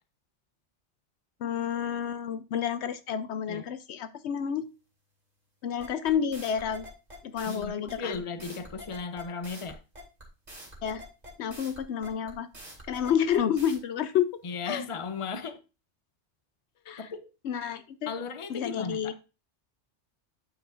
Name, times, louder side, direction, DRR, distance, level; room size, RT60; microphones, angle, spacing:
voice 1, 1.4-4.7 5.6-6.9 7.2-8.1 10.8-11.0 11.4-12.5 12.9-14.3 14.7-14.8 16.9-17.1 17.4-18.1 18.5-19.1, left 8 dB, 75° left, 0.9 m, -29 dB
sound 1, 5.8-13.8, equal, 35° right, 2.6 m, -46 dB
voice 2, 7.4-9.8 14.4-15.6 17.0-17.3 18.0-19.2, left 5 dB, 30° left, 0.7 m, -36 dB
8.9 x 7.0 x 2.5 m
omnidirectional pair, 1.2 m